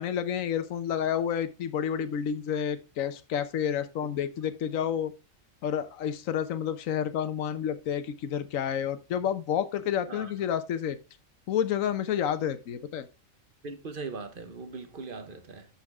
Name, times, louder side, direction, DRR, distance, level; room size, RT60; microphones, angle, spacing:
voice 1, 0.0-5.1 5.6-11.0 11.5-13.1, left 9 dB, 75° left, 1.2 m, -30 dB
voice 2, 13.6-15.7, right 4 dB, 40° right, 1.3 m, -40 dB
10.5 x 5.8 x 3.5 m
omnidirectional pair, 1.4 m